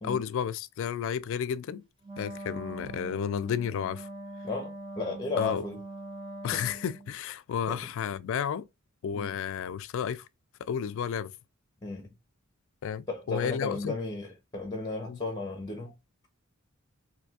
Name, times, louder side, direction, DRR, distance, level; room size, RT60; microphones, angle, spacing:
voice 1, 0.0-1.8 2.2-4.1 5.4-5.6 6.4-8.7 9.0-10.3 10.6-11.3 12.8-13.9 15.1-15.2, left 8 dB, 65° left, 0.3 m, -32 dB
Wind instrument woodwind instrument, 2.0-7.2, right 2 dB, 25° right, 0.6 m, -42 dB
voice 2, 4.4-5.8 6.5-6.6 7.7-7.8 9.1-9.3 11.8-12.1 13.1-15.9, left 3 dB, 20° left, 0.7 m, -34 dB
3.2 x 2.7 x 2.7 m
head